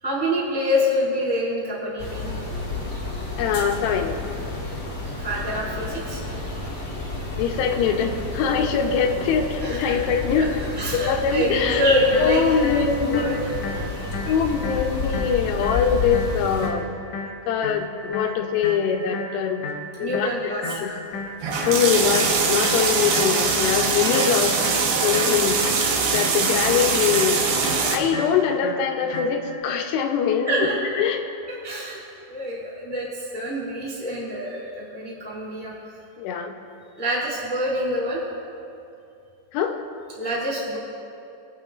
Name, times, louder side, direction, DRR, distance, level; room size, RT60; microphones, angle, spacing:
voice 1, 0.0-2.3 5.2-6.2 9.6-10.0 10.4-10.5 10.8-12.7 13.0-13.6 20.0-20.7 24.9-25.3 30.5-30.7 31.6-32.0 32.3-35.7 36.9-38.2 40.1-40.8, equal, 5° left, -7 dB, 1.3 m, -26 dB
sound 1, 2.0-16.7, left 2 dB, 30° left, 2.7 m, -30 dB
voice 2, 3.4-4.2 7.4-10.6 10.9-11.9 12.2-13.4 14.3-17.0 17.5-19.6 20.0-21.0 21.7-24.6 25.0-25.6 26.1-27.4 27.9-30.7 31.0-31.2 36.2-36.5 39.5-39.8, left 7 dB, 80° left, 4 dB, 2.8 m, -23 dB
sound 2, 11.6-29.6, left 2 dB, 65° left, 1.7 m, -35 dB
sound 3, 21.4-28.0, right 5 dB, 80° right, 3.2 m, -22 dB
23.5 x 8.7 x 2.4 m, 2.7 s
omnidirectional pair, 4.9 m